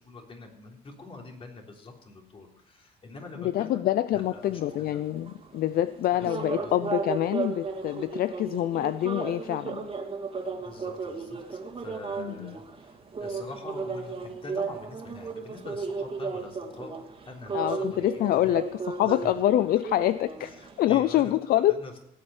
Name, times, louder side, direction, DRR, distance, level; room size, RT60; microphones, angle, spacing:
voice 1, 0.0-3.8 4.1-5.0 6.2-6.9 10.6-18.6 19.0-19.3 20.4-21.9, left 3 dB, 35° left, 1 dB, 3.6 m, -45 dB
voice 2, 3.5-9.9 12.2-12.5 17.5-18.7 19.0-20.5 20.8-21.7, left 13 dB, 60° left, 15 dB, 0.5 m, -26 dB
sound 1, 4.2-20.9, right 4 dB, 30° right, 2.5 m, -35 dB
17.5 x 8.6 x 7.2 m, 0.76 s
cardioid pair, 110°, 17 cm